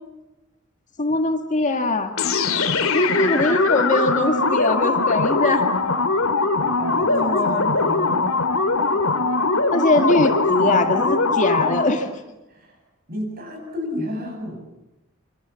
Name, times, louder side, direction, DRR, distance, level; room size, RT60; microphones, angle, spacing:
voice 1, 1.0-2.1 2.9-5.7 7.1-7.7 9.7-12.1, left 2 dB, 35° left, 5 dB, 2.0 m, -21 dB
sound 1, 2.2-12.0, left 3 dB, 80° left, 2.6 m, -21 dB
voice 2, 6.6-8.3 12.5-12.8 13.1-14.6, left 1 dB, 45° right, 4 dB, 7.9 m, -32 dB
28.5 x 26.5 x 7.1 m, 0.97 s
head